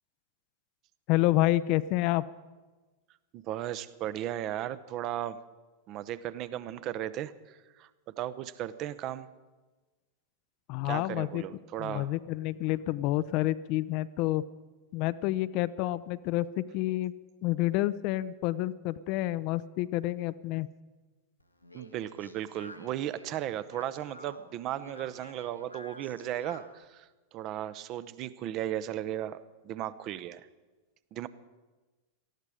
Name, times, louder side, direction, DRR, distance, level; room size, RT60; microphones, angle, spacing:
voice 1, 1.1-2.2 10.7-11.4 11.8-14.4 14.9-17.1 17.4-20.7, left 16 dB, 45° left, 17 dB, 0.5 m, -29 dB
voice 2, 3.3-5.4 5.9-7.9 8.2-9.3 10.8-12.1 21.7-30.5 31.1-31.3, right 12 dB, 35° right, 15 dB, 0.7 m, -36 dB
Speech, 21.4-26.8, left 1 dB, 85° left, 1.4 m, -51 dB
18.5 x 14.0 x 4.9 m, 1.2 s
figure-of-eight pair, 90°, 0 cm